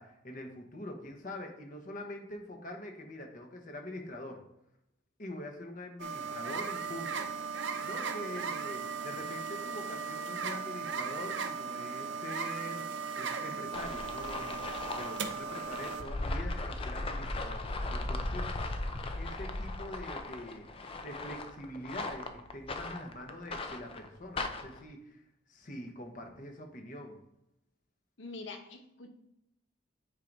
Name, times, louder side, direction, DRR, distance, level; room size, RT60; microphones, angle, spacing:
voice 1, 0.0-4.4 5.2-7.3 7.8-14.6 15.0-17.6 17.9-18.5 19.2-20.6 21.0-25.2 25.5-27.2, left 1 dB, 45° left, 3 dB, 1.1 m, -44 dB
sound 1, 6.0-16.0, right 5 dB, 75° right, 0.6 m, -37 dB
sound 2, 13.7-24.8, left 2 dB, 30° left, 0.5 m, -38 dB
voice 2, 28.2-29.1, left 3 dB, 85° left, 4 dB, 1.0 m, -44 dB
9.2 x 4.7 x 2.7 m, 0.83 s
head